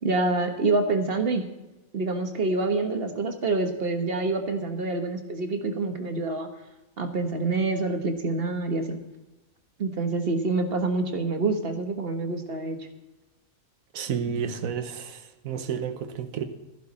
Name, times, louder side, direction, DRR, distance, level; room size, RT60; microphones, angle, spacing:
voice 1, 0.0-1.4 1.9-6.5 7.0-9.0 9.8-12.9, right 3 dB, 45° right, 1.5 m, -26 dB
voice 2, 13.9-16.4, right 7 dB, 75° right, 1.4 m, -31 dB
14.5 x 11.0 x 4.2 m
omnidirectional pair, 1.4 m